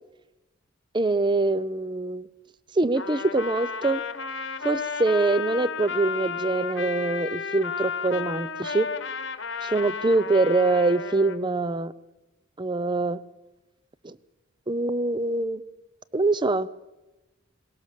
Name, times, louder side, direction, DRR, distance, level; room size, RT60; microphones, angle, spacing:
voice 1, 0.9-2.3 2.8-4.0 4.6-8.9 9.6-11.9 12.6-13.2 14.0-14.2 14.7-15.6 16.1-16.7, right 2 dB, 25° right, 17 dB, 0.6 m, -24 dB
Trumpet, 2.9-11.4, left 5 dB, 65° left, 1.3 m, -33 dB
21.5 x 19.0 x 6.6 m, 1.0 s
head